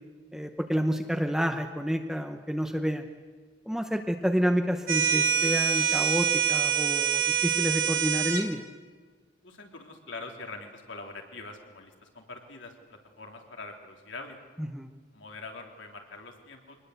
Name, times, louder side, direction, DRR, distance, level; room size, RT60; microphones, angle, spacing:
voice 1, 0.3-3.1 3.7-8.6 14.6-14.9, equal, ahead, 4 dB, 0.8 m, -29 dB
sound 1, 4.9-8.5, right 8 dB, 50° right, 1.9 m, -25 dB
voice 2, 9.4-14.4 15.1-16.8, left 3 dB, 85° left, 2 dB, 3.4 m, -44 dB
24.0 x 20.0 x 8.0 m, 1.5 s
head